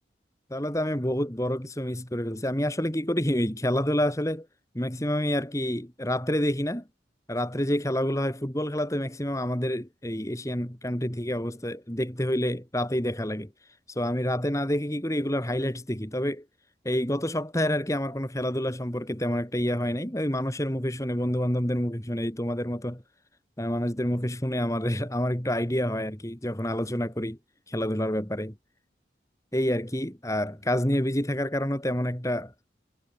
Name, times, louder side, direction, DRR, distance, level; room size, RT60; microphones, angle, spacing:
voice 1, 0.5-4.5 4.7-6.8 7.3-13.5 13.9-16.4 16.8-23.0 23.6-27.4 27.7-28.5 29.5-32.5, equal, 15° left, 2.7 m, -28 dB
head